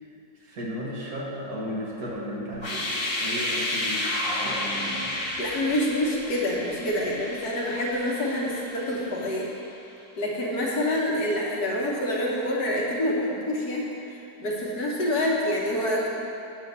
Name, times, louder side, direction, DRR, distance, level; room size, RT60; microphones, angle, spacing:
voice 1, 0.4-5.3, equal, 60° right, -4 dB, 1.5 m, -35 dB
sound 1, 2.5-9.4, left 1 dB, 35° left, 0.4 m, -31 dB
voice 2, 5.1-9.5 10.2-13.8 14.1-16.1, left 1 dB, 65° left, -4 dB, 1.6 m, -27 dB
9.1 x 3.2 x 6.6 m, 2.8 s
omnidirectional pair, 1.8 m